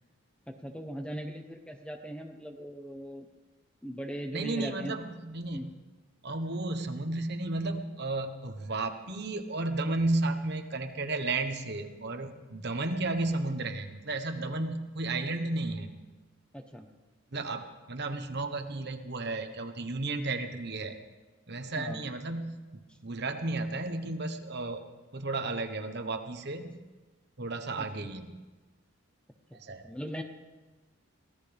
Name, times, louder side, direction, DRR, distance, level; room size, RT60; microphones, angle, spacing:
voice 1, 0.5-3.3 3.8-5.0 5.5-5.7 16.5-16.9 21.7-22.0 27.8-27.9 29.5-29.6 29.8-30.2, equal, 5° left, 5 dB, 0.9 m, -39 dB
voice 2, 4.3-5.6 6.2-15.9 17.3-20.9 21.5-24.8 25.1-26.8 27.4-28.3 29.5-29.8, right 2 dB, 50° right, 6 dB, 1.2 m, -33 dB
23.0 x 17.0 x 3.5 m, 1.2 s
head